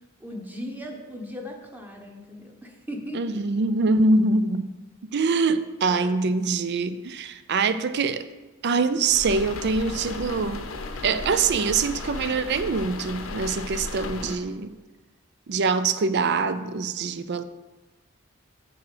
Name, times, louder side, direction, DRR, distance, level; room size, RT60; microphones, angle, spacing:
voice 1, 0.2-3.4 5.9-6.1, equal, 10° right, 1 dB, 1.1 m, -38 dB
voice 2, 3.1-4.8 5.1-8.3 8.6-10.6 11.0-14.7 15.5-17.4, right 4 dB, 55° right, 13 dB, 0.5 m, -24 dB
sound 1, 9.1-14.4, left 3 dB, 85° left, 0.8 m, -35 dB
7.3 x 7.0 x 5.0 m, 1.2 s
head